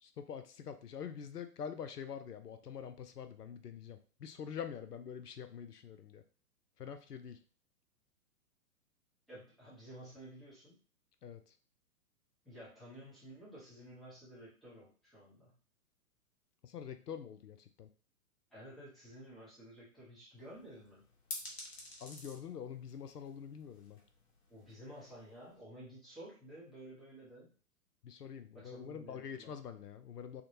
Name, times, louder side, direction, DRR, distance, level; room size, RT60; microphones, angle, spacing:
voice 1, 0.0-6.2 6.8-7.4 11.2-11.4 16.6-17.9 22.0-24.0 28.0-30.4, left 8 dB, 80° left, 9 dB, 0.5 m, -45 dB
voice 2, 9.3-10.8 12.4-15.5 18.5-21.0 24.5-27.5 28.5-29.5, right 1 dB, ahead, -10 dB, 0.6 m, -52 dB
sound 1, 20.4-25.6, left 2 dB, 45° left, 1.1 m, -51 dB
3.5 x 2.2 x 2.7 m, 0.38 s
figure-of-eight pair, 115°, 46 cm